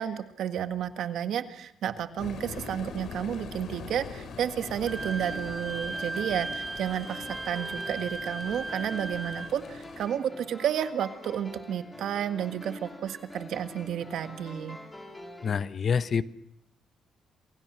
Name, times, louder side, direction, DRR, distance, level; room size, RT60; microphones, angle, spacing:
voice 1, 0.0-14.8, right 9 dB, 75° right, 9 dB, 1.7 m, -31 dB
sound 1, 2.2-10.1, left 5 dB, 65° left, 3.7 m, -43 dB
sound 2, 4.5-15.6, left 1 dB, 10° left, 4.4 m, -45 dB
Wind instrument woodwind instrument, 4.9-9.5, right 3 dB, 25° right, 1.1 m, -37 dB
voice 2, 15.4-16.2, left 6 dB, 45° left, 14 dB, 1.0 m, -26 dB
28.0 x 23.5 x 6.3 m, 0.79 s
cardioid pair, 90°, 0 cm